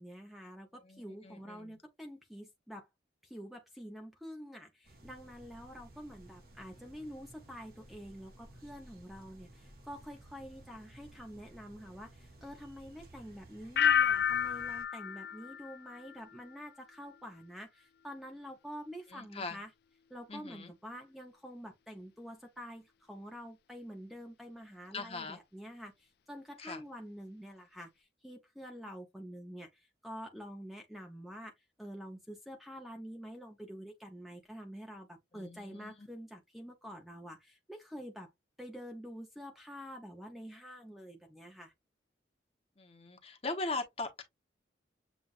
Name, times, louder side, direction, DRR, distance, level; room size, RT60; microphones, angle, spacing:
voice 1, 0.0-2.9 3.2-19.7 20.1-31.5 31.8-38.3 38.6-41.7, equal, ahead, 0.7 m, -47 dB
voice 2, 0.8-1.8 19.1-19.6 20.3-20.7 24.9-25.4 26.6-26.8 35.3-36.1 42.8-44.2, left 3 dB, 30° left, 0.9 m, -40 dB
sound 1, 4.8-14.8, right 1 dB, 55° right, 1.5 m, -56 dB
sound 2, 13.8-16.6 16.9-17.4, left 8 dB, 60° left, 0.3 m, -31 dB
7.2 x 2.5 x 2.4 m
head